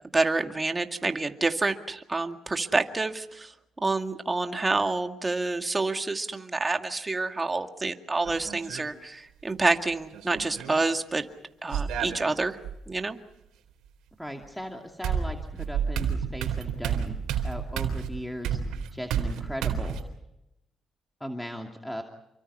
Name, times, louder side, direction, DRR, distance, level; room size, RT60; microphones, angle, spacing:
voice 1, 0.1-3.5 3.8-11.3 11.6-12.6 12.9-13.2, right 3 dB, 20° right, 6 dB, 2.1 m, -28 dB
sound 1, 8.3-8.9 10.1-10.8 11.7-12.7 14.4-14.5 15.0-20.0, right 7 dB, 90° right, 3.9 m, -30 dB
voice 2, 14.2-17.2 17.4-18.6 18.9-20.0 21.2-22.0, equal, 5° left, 2 dB, 2.5 m, -37 dB
29.0 x 24.0 x 5.6 m, 0.87 s
cardioid pair, 90°, 0 cm